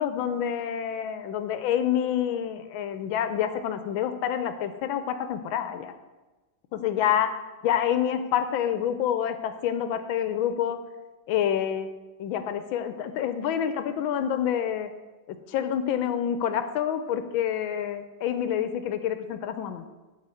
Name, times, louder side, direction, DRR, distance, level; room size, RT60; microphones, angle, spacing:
voice 1, 0.0-5.9 6.7-7.3 7.6-10.8 11.3-11.9 12.2-14.9 15.3-19.8, left 9 dB, 90° left, 10 dB, 1.4 m, -27 dB
12.5 x 4.4 x 7.6 m, 1.2 s
omnidirectional pair, 2.2 m